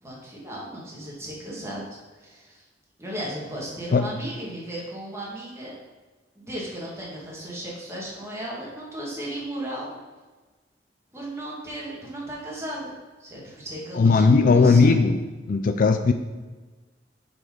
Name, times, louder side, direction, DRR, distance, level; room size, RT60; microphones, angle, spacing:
voice 1, 0.0-2.6 3.0-5.7 6.4-10.0 11.1-13.0 13.2-15.2, right 1 dB, 15° right, -5 dB, 1.8 m, -36 dB
voice 2, 13.9-15.2 15.5-16.1, left 4 dB, 50° left, 8 dB, 0.4 m, -17 dB
7.6 x 4.3 x 5.0 m, 1.3 s
head